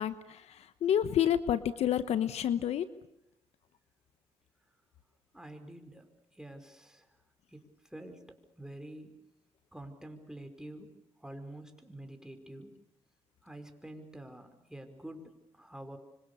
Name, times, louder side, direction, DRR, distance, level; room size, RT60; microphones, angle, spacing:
voice 1, 0.0-2.9, left 10 dB, 75° left, 12 dB, 1.2 m, -29 dB
voice 2, 5.3-6.1 6.3-7.1 7.5-9.2 9.7-10.9 11.2-12.7 13.4-16.0, right 1 dB, 5° right, 6 dB, 5.2 m, -47 dB
26.0 x 26.0 x 7.0 m, 0.82 s
supercardioid pair, 65°, 11 cm